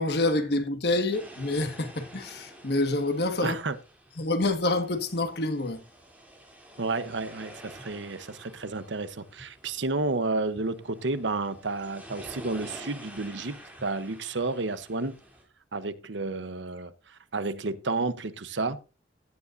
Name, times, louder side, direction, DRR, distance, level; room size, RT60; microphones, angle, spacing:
voice 1, 0.0-3.6 4.2-5.8, left 2 dB, 60° left, 1.8 m, -27 dB
sound 1, 1.1-15.4, right 1 dB, 10° right, 3.3 m, -49 dB
voice 2, 3.4-3.8 6.8-15.2 15.7-18.8, right 3 dB, 80° right, 1.0 m, -31 dB
16.0 x 9.8 x 2.7 m
head